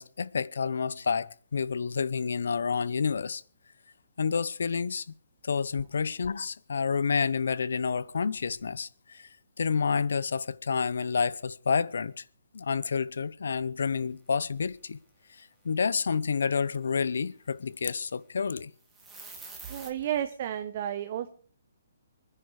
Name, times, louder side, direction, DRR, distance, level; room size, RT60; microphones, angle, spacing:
voice 1, 0.0-3.4 4.2-5.1 5.4-9.3 9.6-12.2 12.5-15.0 15.4-18.7, left 5 dB, 80° left, 0.8 m, -29 dB
sound 1, 18.8-19.9, right 4 dB, 5° right, 2.8 m, -45 dB
voice 2, 19.7-21.3, right 10 dB, 45° right, 1.1 m, -32 dB
24.0 x 10.0 x 4.8 m
hypercardioid pair, 150°, 0 cm